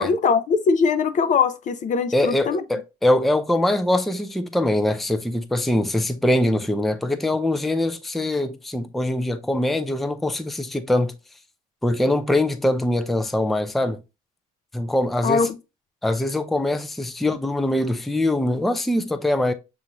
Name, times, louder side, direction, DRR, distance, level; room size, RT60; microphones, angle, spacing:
voice 1, 0.0-2.6 15.2-15.6, left 5 dB, 45° left, 0.6 m, -21 dB
voice 2, 2.1-11.1 11.8-14.0 14.7-15.5 16.0-19.5, left 1 dB, ahead, 0.4 m, -23 dB
6.8 x 2.5 x 3.0 m
cardioid pair, 110°, 17 cm